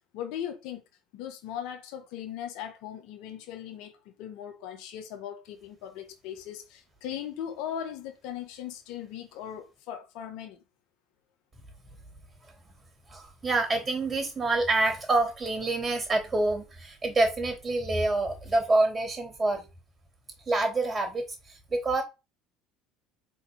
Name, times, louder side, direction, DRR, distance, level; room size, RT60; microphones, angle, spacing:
voice 1, 0.1-0.8 1.1-10.6, left 10 dB, 70° left, 1.6 m, -39 dB
voice 2, 13.1-19.7 20.5-22.0, right 2 dB, 20° right, 3.7 m, -27 dB
5.4 x 4.2 x 5.8 m
supercardioid pair, 90°, 0 cm